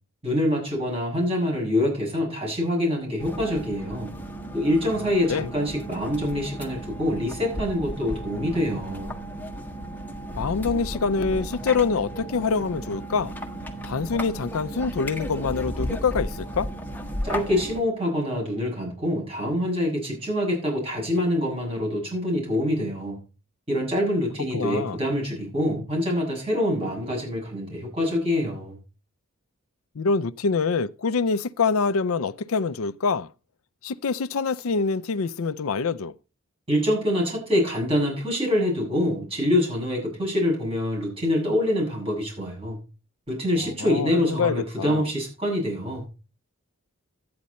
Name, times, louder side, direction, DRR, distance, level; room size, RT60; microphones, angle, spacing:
voice 1, 0.2-4.1 4.5-9.1 17.2-23.2 23.7-28.8 36.7-42.8 43.3-46.0, left 1 dB, 25° right, 7.3 m, -25 dB
sound 1, 3.2-17.8, equal, 10° left, 1.4 m, -34 dB
voice 2, 10.4-13.3 13.8-16.7 24.5-25.0 30.0-33.3 33.8-36.1 43.6-45.0, left 4 dB, 75° left, 0.5 m, -25 dB
12.5 x 9.5 x 4.2 m
head